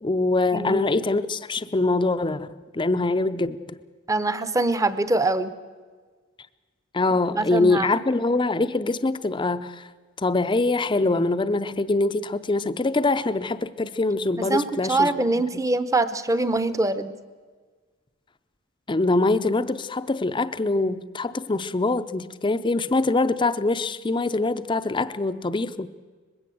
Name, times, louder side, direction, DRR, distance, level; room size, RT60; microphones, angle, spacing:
voice 1, 0.0-3.8 6.9-9.9 10.2-15.1 18.9-25.9, left 2 dB, 20° left, 13 dB, 0.6 m, -24 dB
voice 2, 0.5-0.9 4.1-5.5 7.3-7.9 14.4-17.1, right 2 dB, 15° right, 13 dB, 0.8 m, -24 dB
21.0 x 16.0 x 7.8 m, 1.5 s
head